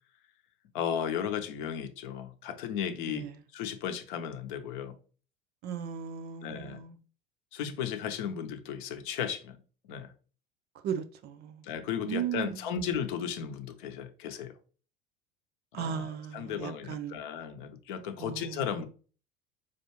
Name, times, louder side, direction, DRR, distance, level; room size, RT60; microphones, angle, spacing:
voice 1, 0.7-3.3 3.5-4.9 6.4-6.8 7.5-9.6 9.9-10.1 11.6-14.6 15.8-18.9, left 8 dB, 60° left, 0.7 m, -35 dB
voice 2, 5.6-7.0 10.8-11.6 12.0-12.6 15.7-17.2 18.2-18.6, right 8 dB, 35° right, 0.5 m, -36 dB
4.5 x 2.5 x 3.0 m
figure-of-eight pair, 75°, 29 cm